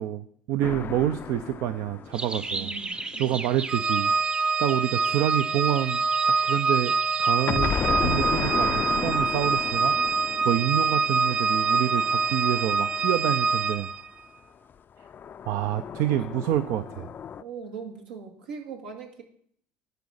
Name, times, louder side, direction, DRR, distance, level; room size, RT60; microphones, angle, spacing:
voice 1, 0.0-4.1 4.6-13.9 15.4-17.1, right 12 dB, 65° right, 11 dB, 0.5 m, -28 dB
sound 1, 0.6-3.4 7.5-13.7 15.0-17.4, left 8 dB, 40° left, 0.4 m, -34 dB
sound 2, 2.1-7.3, right 3 dB, 20° right, 0.7 m, -38 dB
voice 2, 2.5-3.4 9.9-10.7 17.4-19.2, right 6 dB, 90° right, 1 dB, 1.9 m, -41 dB
Organ, 3.7-14.1, right 4 dB, 35° right, 1.2 m, -25 dB
11.0 x 4.1 x 6.4 m, 0.62 s
hypercardioid pair, 70°, 5 cm